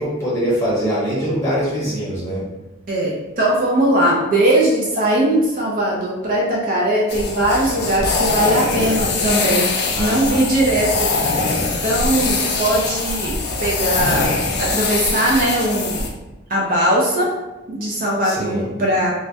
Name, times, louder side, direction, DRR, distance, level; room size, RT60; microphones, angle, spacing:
voice 1, 0.0-2.4 9.9-10.4 18.2-18.7, equal, 15° left, -9 dB, 0.8 m, -23 dB
voice 2, 2.9-9.7 10.0-11.1 11.5-13.3 13.6-14.3 14.6-16.0 16.5-17.3 17.7-19.1, right 1 dB, 45° right, -4 dB, 0.4 m, -19 dB
sound 1, 7.1-16.1, left 3 dB, 50° left, 0.3 m, -22 dB
2.3 x 2.1 x 2.7 m, 1.0 s
head